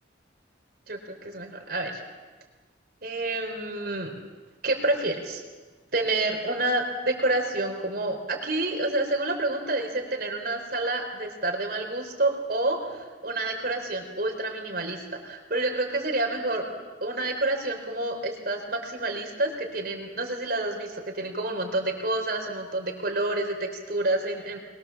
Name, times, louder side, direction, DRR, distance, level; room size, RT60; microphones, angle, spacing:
voice 1, 0.9-2.0 3.0-4.1 4.6-5.4 5.9-16.6 17.0-24.6, right 2 dB, 55° right, 3 dB, 4.3 m, -28 dB
23.5 x 21.5 x 7.3 m, 1.3 s
head